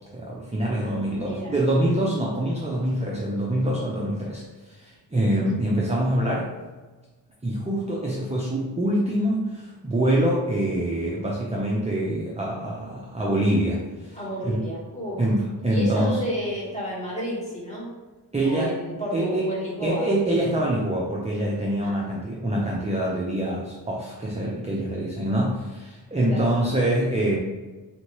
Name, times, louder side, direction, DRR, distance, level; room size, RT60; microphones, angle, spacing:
voice 1, 0.1-4.4 4.7-6.5 7.4-14.6 15.2-16.2 18.3-18.7 19.1-19.5 19.8-27.4, right 1 dB, 15° right, -4 dB, 0.5 m, -25 dB
voice 2, 0.8-1.5 5.3-5.6 14.1-15.3 15.7-17.9 18.4-20.1 21.8-21.9 26.3-26.4, equal, 15° left, -7 dB, 1.4 m, -31 dB
3.6 x 2.8 x 3.0 m, 1.3 s
wide cardioid pair, 105°, 42 cm